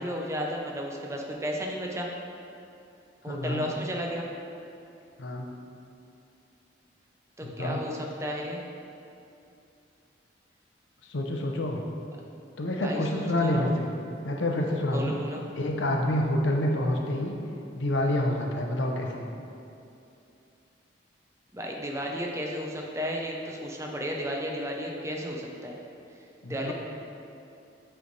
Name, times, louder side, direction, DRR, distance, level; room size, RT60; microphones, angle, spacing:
voice 1, 0.0-2.1 3.2-4.3 7.4-8.6 12.8-13.7 14.9-15.4 21.5-25.8 26.5-26.7, equal, 15° right, 0 dB, 0.5 m, -33 dB
voice 2, 3.3-3.7 5.2-5.5 7.4-7.8 11.1-11.8 12.6-13.9 14.2-15.2 15.6-17.3 17.7-19.3 26.4-26.7, left 1 dB, 85° left, 1 dB, 0.7 m, -27 dB
8.1 x 3.3 x 3.9 m, 2.7 s
head